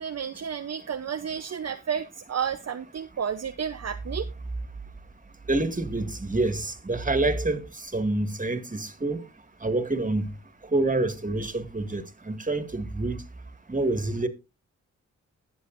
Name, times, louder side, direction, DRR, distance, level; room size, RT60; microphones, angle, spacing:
voice 1, 0.0-4.3, right 7 dB, 55° right, 0.7 m, -31 dB
voice 2, 5.5-9.2 9.6-10.3 10.7-13.2 13.7-14.3, right 2 dB, 25° right, 2.0 m, -27 dB
20.5 x 7.1 x 2.5 m
cardioid pair, 45°, 31 cm